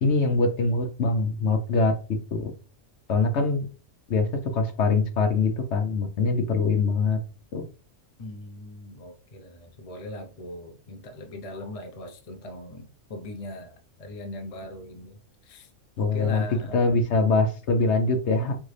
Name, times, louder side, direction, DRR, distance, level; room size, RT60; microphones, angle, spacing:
voice 1, 0.0-1.9 2.3-2.5 3.1-3.7 4.1-7.2 7.5-7.6 16.0-16.4 16.7-18.6, left 3 dB, 65° left, 1.0 m, -23 dB
voice 2, 8.2-13.7 14.0-15.7 16.0-17.0, left 1 dB, 35° left, 0.7 m, -40 dB
3.9 x 3.5 x 3.2 m
omnidirectional pair, 1.3 m